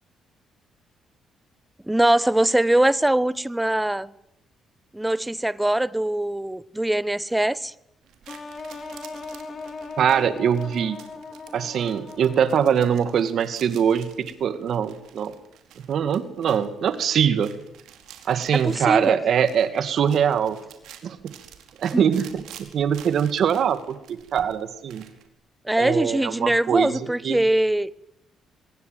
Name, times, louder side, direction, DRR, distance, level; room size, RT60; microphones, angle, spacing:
voice 1, 1.9-4.1 4.9-7.7 18.5-19.2 21.9-22.0 25.6-27.9, right 1 dB, 10° right, 1.1 m, -22 dB
sound 1, 8.0-25.3, right 10 dB, 85° right, 4.6 m, -50 dB
sound 2, 8.3-13.1, left 3 dB, 35° left, 4.6 m, -38 dB
voice 2, 10.0-11.0 11.5-15.3 15.9-17.5 18.2-20.6 21.0-21.3 21.8-25.1 25.8-26.9 27.2-27.4, right 8 dB, 65° right, 2.1 m, -23 dB
25.5 x 22.0 x 9.2 m
cardioid pair, 90°, 0 cm